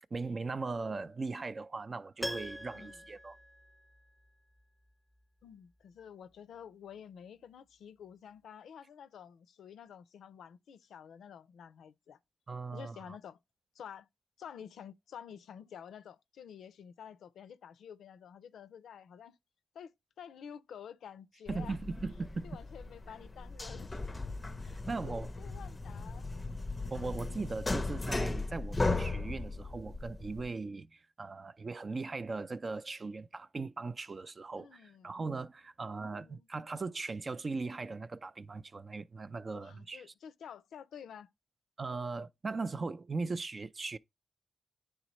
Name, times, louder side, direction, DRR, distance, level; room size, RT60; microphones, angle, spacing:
voice 1, 0.1-3.4 12.5-13.2 21.5-22.6 24.9-25.3 26.9-40.1 41.8-44.0, right 3 dB, 40° right, 0.5 m, -39 dB
Piano, 2.2-4.3 4.6-4.7, equal, ahead, 0.8 m, -43 dB
voice 2, 2.7-3.1 5.4-12.2 12.7-13.4 13.7-14.1 14.4-19.4 19.7-19.9 20.2-21.8 22.4-24.1 24.6-26.2 34.6-35.1 35.8-36.5 39.5-41.3, left 8 dB, 85° left, 0.5 m, -50 dB
sound 1, 21.5-30.5, left 3 dB, 25° left, 0.5 m, -37 dB
9.6 x 3.3 x 3.0 m
cardioid pair, 75°, 0 cm